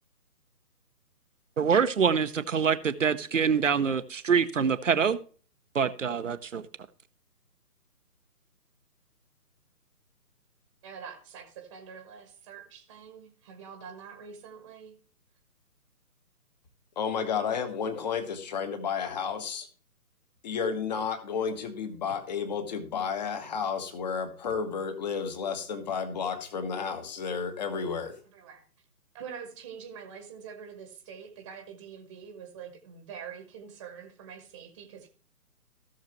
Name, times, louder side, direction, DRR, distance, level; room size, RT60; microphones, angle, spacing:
voice 1, 1.6-5.2 5.7-6.6, right 6 dB, 50° right, 0.9 m, -25 dB
voice 2, 10.8-15.0 28.3-28.6 29.1-35.1, right 7 dB, 20° right, 1.3 m, -45 dB
voice 3, 17.0-19.7 20.4-28.2, left 6 dB, 25° left, 1.4 m, -32 dB
16.5 x 6.6 x 3.1 m
figure-of-eight pair, 145°, 47 cm